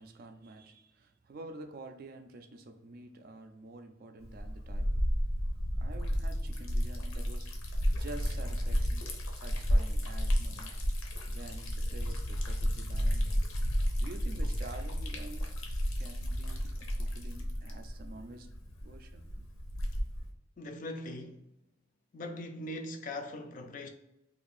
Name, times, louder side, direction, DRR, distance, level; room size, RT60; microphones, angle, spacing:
voice 1, 0.0-5.0 5.8-7.5 7.9-10.8 11.3-13.3 14.0-15.5 16.0-18.5 18.8-19.5, right 2 dB, 45° right, 0.3 m, -48 dB
Liquid, 4.2-20.3, equal, 85° left, 0.7 m, -32 dB
voice 2, 20.6-21.4 22.1-23.9, left 1 dB, 40° left, 0.3 m, -40 dB
2.6 x 2.5 x 4.0 m
head